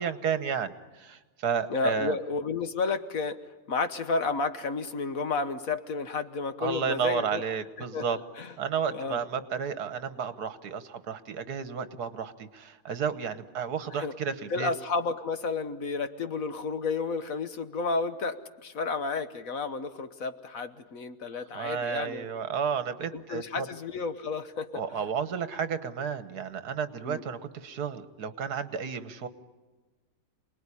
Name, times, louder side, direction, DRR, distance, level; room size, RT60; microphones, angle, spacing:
voice 1, 0.0-2.2 6.6-8.2 8.6-14.7 21.5-23.7 24.7-29.3, right 6 dB, 70° right, 12 dB, 1.7 m, -32 dB
voice 2, 1.7-3.4 3.7-7.4 7.9-8.5 8.9-9.2 13.9-14.2 14.5-22.3 23.1-25.0 27.0-27.2, left 4 dB, 60° left, 10 dB, 1.5 m, -31 dB
28.0 x 20.0 x 9.9 m, 1.3 s
omnidirectional pair, 1.7 m